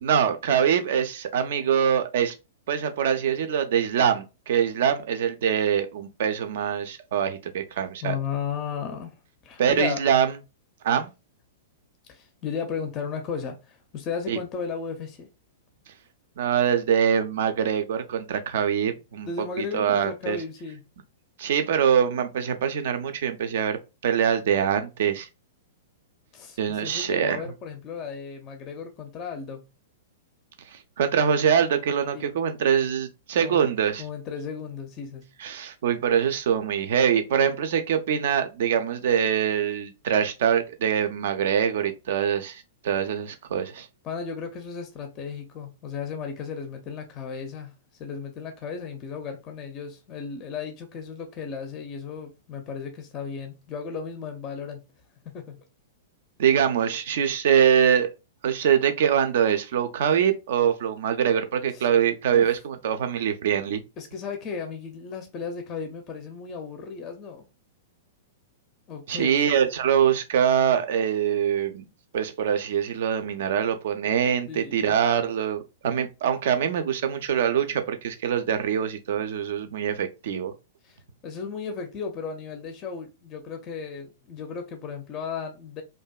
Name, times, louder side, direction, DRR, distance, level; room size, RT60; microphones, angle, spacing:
voice 1, 0.0-2.3 2.7-8.2 9.6-10.3 10.8-11.1 14.3-14.4 16.4-19.3 19.6-20.4 21.4-25.3 26.6-27.4 30.7-34.0 35.4-43.9 56.4-58.1 58.4-63.8 69.1-71.8 72.1-80.5, right 8 dB, 55° right, 0.4 m, -24 dB
voice 2, 8.0-9.2 9.4-10.0 12.1-15.3 19.2-20.8 26.3-29.6 32.1-32.3 33.4-33.7 34.0-35.3 44.0-47.7 48.0-54.8 55.3-55.6 61.7-61.9 62.3-62.5 64.0-67.5 68.9-69.4 74.5-75.0 80.8-85.8, left 6 dB, 30° left, 0.4 m, -35 dB
2.6 x 2.2 x 2.2 m
figure-of-eight pair, 105°, 0 cm